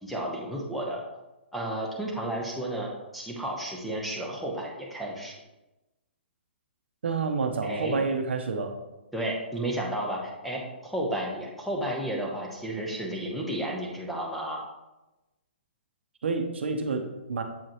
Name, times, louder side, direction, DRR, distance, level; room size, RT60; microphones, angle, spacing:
voice 1, 0.0-1.0 1.5-5.3 7.6-8.1 9.1-14.6, right 1 dB, ahead, -2 dB, 1.0 m, -32 dB
voice 2, 7.0-8.8 16.2-17.4, right 4 dB, 75° right, 5 dB, 0.9 m, -29 dB
7.4 x 4.9 x 3.0 m, 1.0 s
hypercardioid pair, 140°, 6 cm